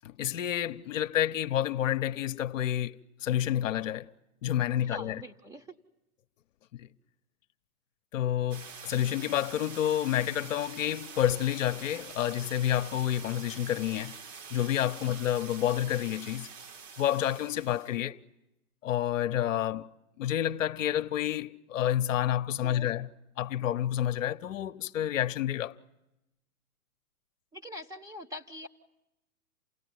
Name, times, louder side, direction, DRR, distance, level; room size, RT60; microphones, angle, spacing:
voice 1, 0.0-4.1 4.4-5.2 6.7-6.9 8.1-14.2 14.5-16.5 17.0-18.2 18.8-19.9 20.2-23.1 23.4-25.8, left 11 dB, 60° left, 0.8 m, -29 dB
voice 2, 4.9-5.7 15.0-15.2 22.6-22.9 27.5-28.7, left 2 dB, 10° right, 0.8 m, -43 dB
sound 1, 8.5-18.0, right 5 dB, 55° right, 1.6 m, -46 dB
28.5 x 17.0 x 9.3 m
hypercardioid pair, 125°, 44 cm